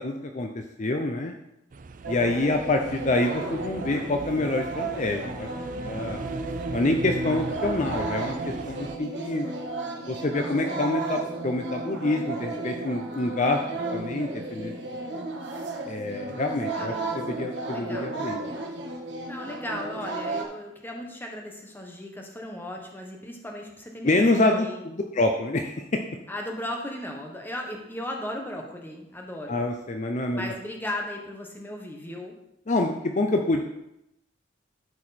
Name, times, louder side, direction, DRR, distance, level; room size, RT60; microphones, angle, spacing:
voice 1, 0.0-1.3 2.1-5.5 5.8-6.2 6.7-9.5 10.1-13.6 13.9-14.7 15.9-18.4 24.0-25.9 29.5-30.5 32.7-33.6, left 2 dB, 40° left, 4 dB, 0.6 m, -26 dB
sound 1, 1.7-9.0, right 3 dB, 45° right, 0.5 m, -39 dB
sound 2, 2.0-20.4, right 2 dB, 85° right, 1.4 m, -34 dB
voice 2, 5.7-6.3 16.7-17.1 17.7-18.2 19.3-24.8 26.3-29.6 30.3-32.4, left 1 dB, 10° left, 1 dB, 1.3 m, -36 dB
12.5 x 4.8 x 4.3 m, 0.85 s
head